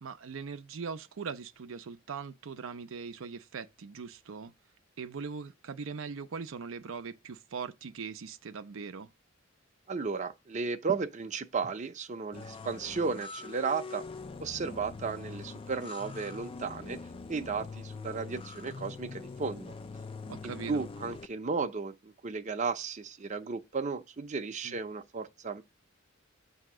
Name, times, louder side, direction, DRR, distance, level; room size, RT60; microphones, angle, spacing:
voice 1, 0.0-4.5 5.0-9.1 20.3-20.9 24.6-24.8, right 5 dB, 85° right, 0.5 m, -41 dB
voice 2, 9.9-14.0 14.4-17.0 17.3-19.7 20.4-25.6, right 4 dB, 40° right, 0.6 m, -34 dB
sound 1, 12.3-21.3, left 4 dB, 30° left, 0.3 m, -43 dB
7.6 x 2.8 x 6.0 m
head